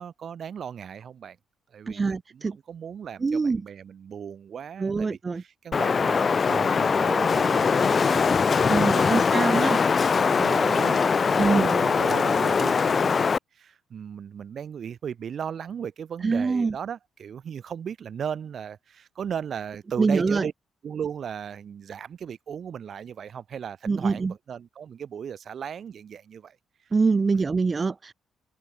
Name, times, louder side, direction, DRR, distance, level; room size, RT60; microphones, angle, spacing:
voice 1, 0.0-1.4 1.7-9.2 9.6-20.5 20.8-26.6, right 8 dB, 55° right, 1.7 m, -37 dB
voice 2, 1.9-2.6 3.2-3.6 4.8-5.4 8.7-9.8 11.4-11.7 16.2-16.8 20.0-20.5 23.9-24.3 26.9-28.1, right 4 dB, 30° right, 1.1 m, -24 dB
Wind, 5.7-13.4, left 5 dB, 40° left, 0.6 m, -22 dB
cardioid pair, 90°, 0 cm